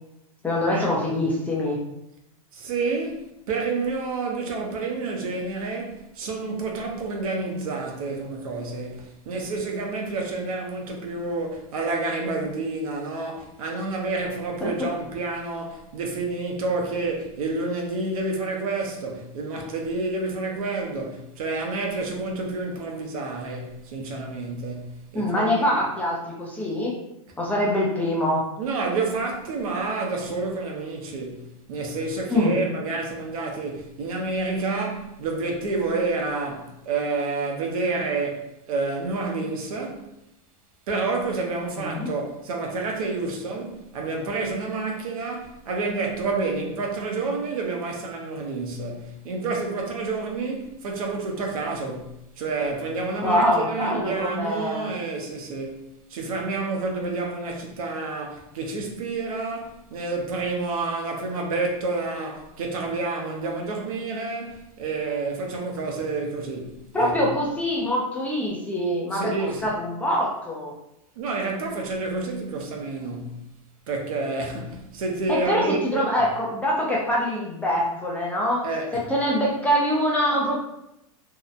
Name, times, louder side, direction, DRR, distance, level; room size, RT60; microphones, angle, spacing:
voice 1, 0.4-1.8 14.6-14.7 25.1-27.0 27.4-28.5 32.3-32.5 41.8-42.1 53.2-54.9 66.9-69.3 69.6-70.7 75.3-78.6 78.9-80.6, left 1 dB, 10° left, 0.4 m, -24 dB
voice 2, 2.5-25.7 28.6-40.1 40.9-55.8 56.1-67.2 69.1-69.7 71.2-73.4 73.9-76.1 78.6-79.1, right 3 dB, 75° right, 0.7 m, -29 dB
2.7 x 2.1 x 2.4 m
supercardioid pair, 145°, 18 cm